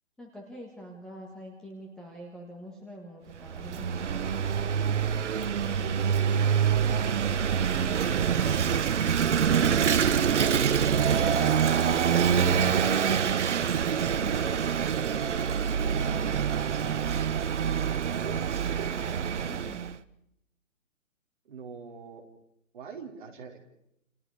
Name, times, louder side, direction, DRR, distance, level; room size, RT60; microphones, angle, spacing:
voice 1, 0.2-4.3 19.5-19.9, equal, ahead, -2 dB, 1.6 m, -45 dB
Vehicle / Engine, 3.3-20.0, right 7 dB, 55° right, 1.2 m, -26 dB
voice 2, 5.7-9.4 15.3-15.6 16.0-17.1 18.0-18.9 21.4-22.2 22.7-23.6, right 5 dB, 35° right, 0 dB, 4.4 m, -43 dB
29.5 x 29.5 x 4.9 m, 0.78 s
hypercardioid pair, 165°, 41 cm